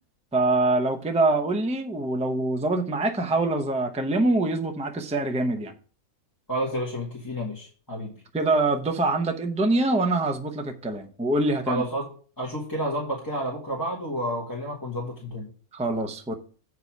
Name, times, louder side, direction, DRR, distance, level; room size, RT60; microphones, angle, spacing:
voice 1, 0.3-5.7 8.3-11.8 15.7-16.3, right 2 dB, 5° right, 0.6 m, -24 dB
voice 2, 6.5-8.1 11.7-12.1 12.4-15.5, right 1 dB, 15° left, 1.7 m, -30 dB
8.1 x 4.8 x 5.9 m
omnidirectional pair, 1.5 m